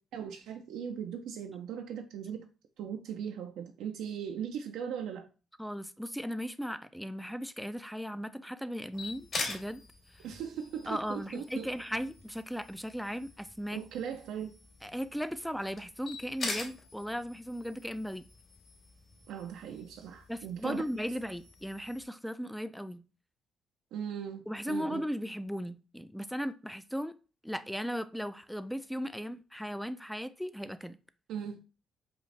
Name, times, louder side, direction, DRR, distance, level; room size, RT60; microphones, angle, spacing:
voice 1, 0.1-2.4 2.8-5.3 10.2-11.7 13.7-14.6 19.3-20.8 23.9-25.0 31.3-31.6, right 8 dB, 85° right, 0.4 m, -39 dB
voice 2, 5.6-9.8 10.9-13.8 14.8-18.2 20.3-23.0 24.5-27.1 27.4-31.0, equal, ahead, 0.3 m, -37 dB
sound 1, 8.9-22.1, left 3 dB, 50° left, 2.1 m, -44 dB
5.1 x 2.4 x 3.2 m
cardioid pair, 85°, 0 cm